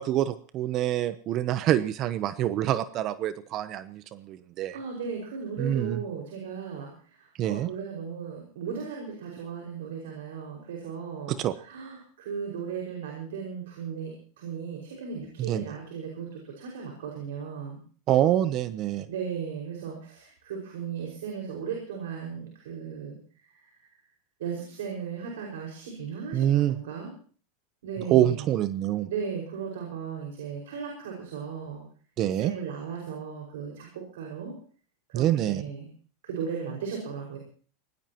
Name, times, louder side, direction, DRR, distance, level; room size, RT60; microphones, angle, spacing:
voice 1, 0.0-4.8 5.6-6.0 7.4-7.7 11.3-11.5 15.4-15.6 18.1-19.1 26.3-26.7 28.1-29.1 32.2-32.5 35.1-35.6, right 12 dB, 45° right, 14 dB, 0.8 m, -26 dB
voice 2, 4.7-17.8 19.1-23.9 24.4-27.1 27.8-28.5 29.1-31.8 32.2-34.5 35.1-35.9 36.2-37.4, right 6 dB, 80° right, 0 dB, 5.5 m, -36 dB
23.0 x 18.5 x 3.0 m, 0.42 s
hypercardioid pair, 110°, 0 cm